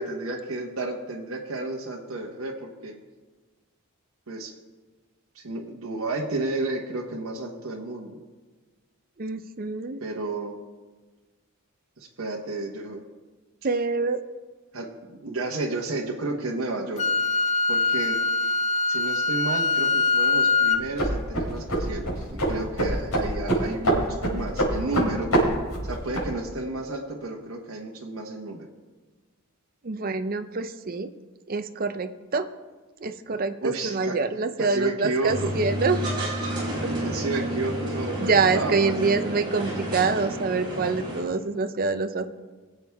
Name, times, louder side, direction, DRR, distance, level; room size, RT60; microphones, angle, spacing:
voice 1, 0.0-2.9 4.3-4.5 5.3-8.2 10.0-10.6 12.0-13.0 14.7-17.0 17.7-18.2 18.9-25.3 25.8-28.7 33.6-34.2 34.6-35.5 37.0-38.9, right 2 dB, 65° right, -1 dB, 1.2 m, -32 dB
voice 2, 9.2-10.0 13.6-14.2 29.8-31.1 31.5-32.5 33.0-36.0 36.8-36.9 37.3-37.4 38.2-42.3, right 4 dB, 40° right, 9 dB, 0.6 m, -26 dB
Wind instrument woodwind instrument, 17.0-20.8, left 4 dB, 30° left, 0.6 m, -23 dB
sound 1, 20.7-26.3, right 1 dB, 85° left, 4.8 m, -26 dB
sound 2, 35.2-41.2, right 1 dB, 20° right, 4.3 m, -30 dB
21.5 x 8.0 x 3.5 m, 1.3 s
head